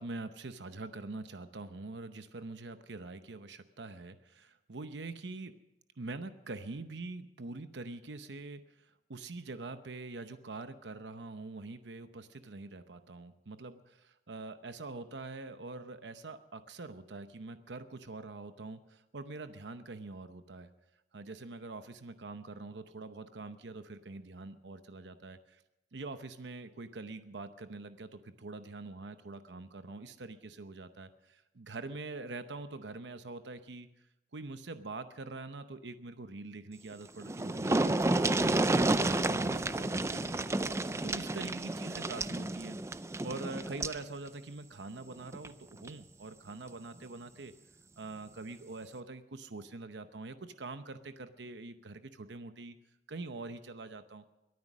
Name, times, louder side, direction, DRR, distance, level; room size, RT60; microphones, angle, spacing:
voice 1, 0.0-5.5 6.0-8.6 9.1-20.7 21.1-25.6 25.9-33.9 34.3-40.5 41.0-42.8 43.2-47.5 48.0-52.8 53.1-54.2, right 3 dB, 85° right, 10 dB, 0.8 m, -44 dB
sound 1, 36.9-37.0 37.2-44.0 45.3-45.5 45.9-46.0, right 2 dB, 15° right, 0.4 m, -31 dB
22.5 x 9.6 x 6.2 m, 0.91 s
head